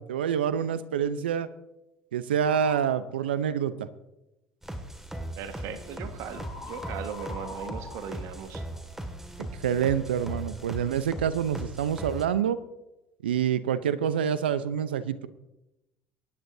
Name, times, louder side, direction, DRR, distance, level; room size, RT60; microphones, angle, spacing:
voice 1, 0.0-1.5 2.1-3.9 9.4-12.6 13.2-15.3, right 8 dB, 90° right, 14 dB, 0.7 m, -27 dB
sound 1, 2.4-3.0 6.3-9.0, left 3 dB, 40° left, 2.7 m, -43 dB
sound 2, 4.6-12.2, right 1 dB, 10° right, 2.1 m, -39 dB
voice 2, 5.4-8.7, right 7 dB, 65° right, 8 dB, 1.7 m, -38 dB
24.5 x 10.5 x 2.8 m, 0.95 s
hypercardioid pair, 75°, 5 cm